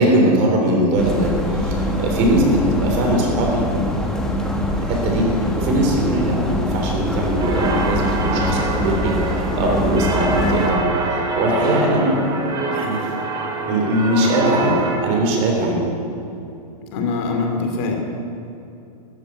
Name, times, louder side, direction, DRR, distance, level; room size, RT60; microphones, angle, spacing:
voice 1, 0.0-3.7 4.8-5.3 5.5-10.8 11.1-12.3 12.6-13.1 13.7-15.9, right 1 dB, 35° right, 1 dB, 3.6 m, -20 dB
sound 1, 1.0-10.7, left 1 dB, 5° left, 1.4 m, -23 dB
sound 2, 7.4-15.0, right 2 dB, 20° right, 2.4 m, -24 dB
voice 2, 16.9-18.0, left 4 dB, 45° left, 3 dB, 2.6 m, -23 dB
13.5 x 11.0 x 9.2 m, 2.8 s
supercardioid pair, 155°, 21 cm